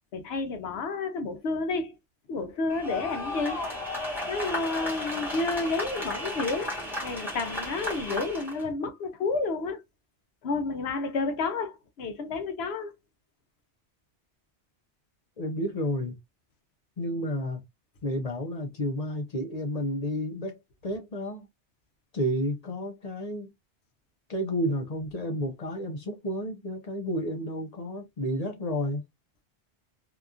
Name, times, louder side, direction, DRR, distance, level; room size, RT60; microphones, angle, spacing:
voice 1, 0.1-1.9 2.3-3.6 4.3-9.8 10.4-12.9, left 3 dB, 65° left, 0.9 m, -30 dB
sound 1, 2.7-8.6, left 1 dB, ahead, 1.0 m, -34 dB
voice 2, 15.4-16.2 17.0-17.6 18.0-21.5 22.1-23.5 24.3-29.0, equal, 45° left, 0.6 m, -31 dB
2.8 x 2.4 x 2.3 m
omnidirectional pair, 1.2 m